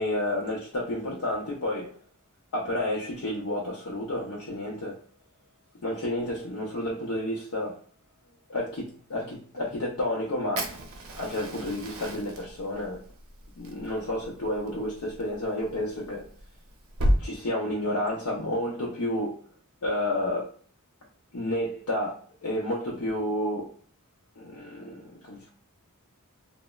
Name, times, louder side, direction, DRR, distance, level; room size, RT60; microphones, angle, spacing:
voice 1, 0.0-2.0 2.5-5.0 5.8-7.8 8.5-10.9 11.2-13.1 13.6-16.3 17.2-19.5 19.8-20.6 21.3-23.8 24.4-25.5, left 1 dB, 75° left, 0.5 m, -31 dB
Fire, 10.6-17.2, equal, 60° right, 0.5 m, -33 dB
3.0 x 2.0 x 2.2 m
head